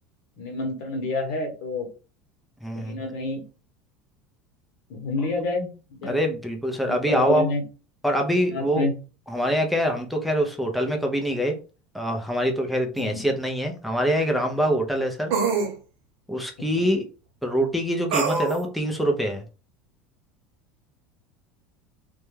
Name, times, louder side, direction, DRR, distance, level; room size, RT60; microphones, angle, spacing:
voice 1, 0.4-1.9 2.7-3.4 4.9-6.2 6.9-7.6 8.5-8.9 13.0-13.2 16.7-16.9, left 3 dB, 70° left, 2 dB, 0.9 m, -29 dB
voice 2, 2.6-2.9 6.0-7.4 8.0-8.9 9.3-11.6 11.9-15.3 16.3-17.0 17.4-19.4, equal, ahead, 2 dB, 0.4 m, -24 dB
sound 1, 13.0-13.1 15.3-15.7 18.1-18.6, right 5 dB, 60° right, 0.8 m, -24 dB
2.2 x 2.1 x 3.1 m, 0.35 s
supercardioid pair, 120°, 5 cm